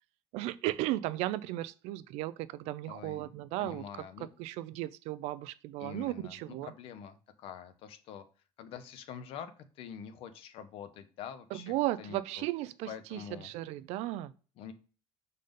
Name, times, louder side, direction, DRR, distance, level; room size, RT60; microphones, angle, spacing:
voice 1, 0.3-3.8 4.4-6.7 11.5-14.3, right 16 dB, 80° right, 0.4 m, -35 dB
voice 2, 2.9-3.3 3.6-4.3 5.8-8.2 8.6-12.5 12.9-13.5 14.6-14.7, left 8 dB, 60° left, 0.7 m, -46 dB
5.2 x 4.1 x 5.1 m
cardioid pair, 165°, 11 cm